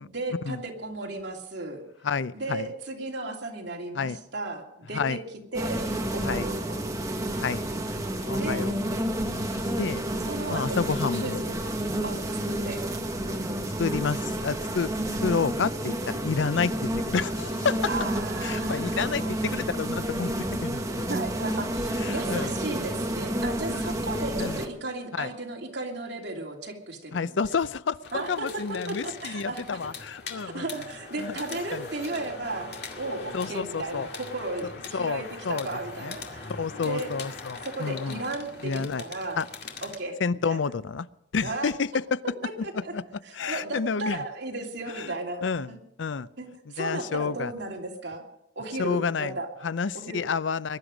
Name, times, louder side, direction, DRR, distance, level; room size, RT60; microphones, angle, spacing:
voice 1, 0.1-1.8 2.3-5.2 5.5-5.8 6.1-6.8 8.3-8.7 10.2-12.8 17.9-19.4 21.1-27.4 28.1-29.8 30.3-36.5 36.8-37.1 37.6-39.4 39.8-40.2 40.4-40.6 41.4-41.7 42.4-42.9 43.2-45.8 46.4-48.2 48.6-49.5 49.9-50.2, right 2 dB, 70° right, 0 dB, 2.8 m, -35 dB
voice 2, 2.0-2.7 3.9-4.2 4.9-5.2 6.2-6.5 7.4-7.6 8.3-8.9 9.2-9.4 9.8-10.0 10.5-11.4 13.8-14.9 15.2-17.8 18.4-21.0 22.0-22.5 23.7-23.9 24.4-24.6 25.1-25.3 27.1-30.6 31.2-31.4 31.7-31.8 33.3-34.1 34.9-35.7 36.0-36.1 36.6-38.2 38.6-39.0 39.4-39.5 40.2-41.1 41.3-42.2 42.6-42.7 42.9-43.0 43.3-44.2 44.9-45.1 45.4-45.7 46.0-46.3 46.8-47.5 48.8-49.3 49.6-50.8, left 5 dB, 85° left, 16 dB, 0.5 m, -29 dB
sound 1, 5.5-24.7, right 1 dB, 20° right, 1.5 m, -30 dB
sound 2, 28.0-40.0, left 4 dB, 60° left, 2.2 m, -41 dB
22.0 x 11.5 x 5.2 m, 0.80 s
head